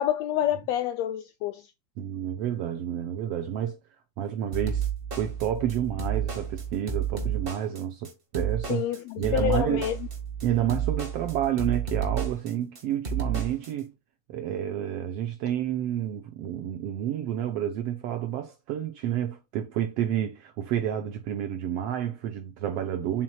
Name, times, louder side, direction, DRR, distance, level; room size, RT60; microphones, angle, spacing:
voice 1, 0.0-1.7 8.7-10.0, left 11 dB, 85° left, 1.5 m, -28 dB
voice 2, 2.0-3.8 4.2-4.9 5.1-8.8 9.2-9.8 10.4-13.9 14.3-23.2, right 10 dB, 75° right, 1.5 m, -30 dB
sound 1, 4.5-13.7, right 7 dB, 30° right, 1.2 m, -31 dB
7.5 x 5.9 x 2.3 m
omnidirectional pair, 3.5 m